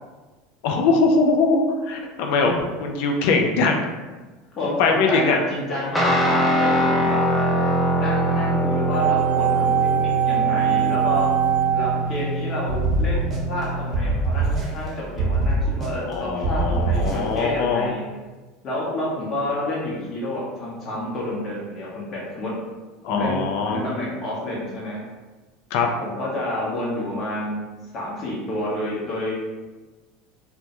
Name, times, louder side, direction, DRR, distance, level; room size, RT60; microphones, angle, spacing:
voice 1, 0.6-2.5 2.8-3.8 4.6-5.4 16.1-17.9 23.0-23.8 25.7-25.9, left 4 dB, 65° left, 2 dB, 0.3 m, -21 dB
voice 2, 4.6-7.2 8.0-11.3 11.7-18.0 18.6-22.5 23.1-25.0 26.0-27.6 27.9-29.3, left 1 dB, 45° left, -5 dB, 0.7 m, -29 dB
Guitar, 5.9-14.1, right 1 dB, 5° left, 0.4 m, -23 dB
sound 1, 8.9-13.0 13.3-13.4, right 12 dB, 80° right, 0.3 m, -23 dB
sound 2, 12.7-13.6 13.9-14.9 15.2-16.1 16.4-17.4, right 2 dB, 35° right, 0.7 m, -23 dB
2.1 x 2.1 x 2.8 m, 1.2 s
hypercardioid pair, 85°, 0 cm